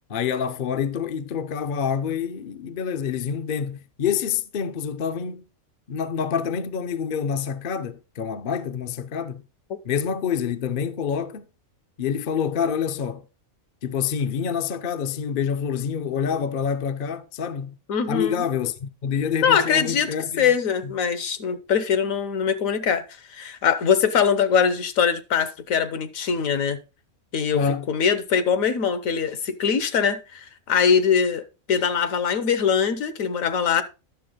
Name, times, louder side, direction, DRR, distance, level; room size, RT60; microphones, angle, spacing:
voice 1, 0.1-5.4 5.9-9.4 9.8-11.4 12.0-13.2 13.8-17.8 18.1-20.6 20.8-20.9 27.5-27.9, left 7 dB, 50° left, 0.6 m, -27 dB
voice 2, 17.9-18.5 19.4-26.8 27.3-27.6 27.9-33.8, left 7 dB, 70° left, 1.2 m, -22 dB
10.5 x 6.9 x 3.9 m
omnidirectional pair, 1.5 m